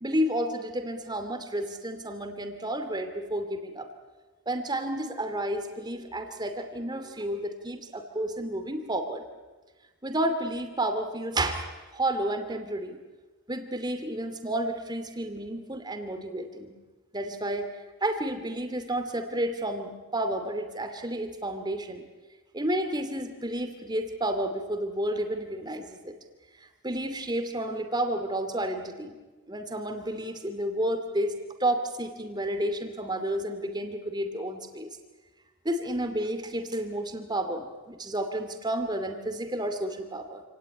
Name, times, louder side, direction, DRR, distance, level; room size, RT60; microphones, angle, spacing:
voice 1, 0.0-3.9 4.5-9.2 10.0-13.0 13.5-16.7 17.1-17.7 18.0-22.0 22.5-26.2 26.6-29.2 29.5-34.9 35.6-40.4, right 1 dB, 20° right, 7 dB, 2.5 m, -31 dB
28.0 x 18.0 x 9.9 m, 1.2 s
head